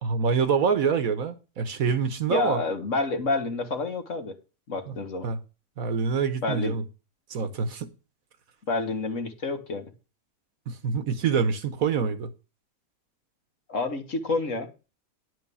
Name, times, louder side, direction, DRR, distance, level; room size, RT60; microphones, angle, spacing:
voice 1, 0.0-2.6 5.2-5.4 5.8-6.8 7.3-7.9 10.7-12.3, right 6 dB, 65° right, 1.4 m, -26 dB
voice 2, 2.3-4.4 4.7-5.3 6.4-6.8 8.7-9.9 13.7-14.7, left 3 dB, 55° left, 1.9 m, -28 dB
11.0 x 4.8 x 7.0 m
omnidirectional pair, 1.6 m